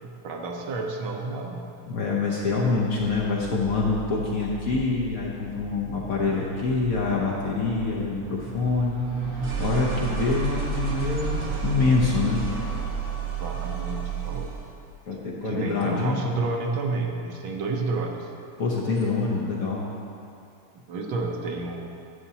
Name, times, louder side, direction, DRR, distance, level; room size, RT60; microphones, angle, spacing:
voice 1, 0.0-1.7 13.4-14.5 15.4-18.3 20.9-21.9, right 3 dB, 75° right, 2 dB, 1.6 m, -30 dB
voice 2, 1.9-9.0 9.3-12.5 15.1-16.2 18.6-19.9, left 3 dB, 55° left, -4 dB, 1.0 m, -25 dB
sound 1, 2.4-13.0, left 6 dB, 80° left, 1.4 m, -42 dB
sound 2, 6.8-14.7, right 6 dB, 50° right, 1.2 m, -31 dB
11.0 x 8.3 x 2.8 m, 2.5 s
omnidirectional pair, 2.3 m